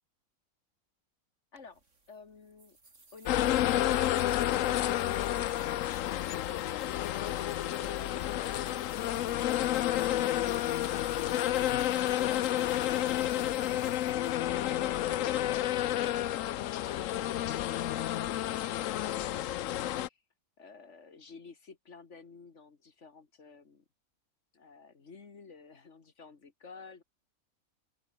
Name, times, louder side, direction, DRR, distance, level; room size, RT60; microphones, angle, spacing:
voice 1, 1.5-2.8 20.6-23.8 24.5-27.0, left 4 dB, 50° left, 2.3 m, -53 dB
sound 1, 1.6-15.8, right 3 dB, 55° right, 3.7 m, -58 dB
sound 2, 3.3-20.1, left 13 dB, 65° left, 1.0 m, -30 dB
open air
omnidirectional pair, 1.5 m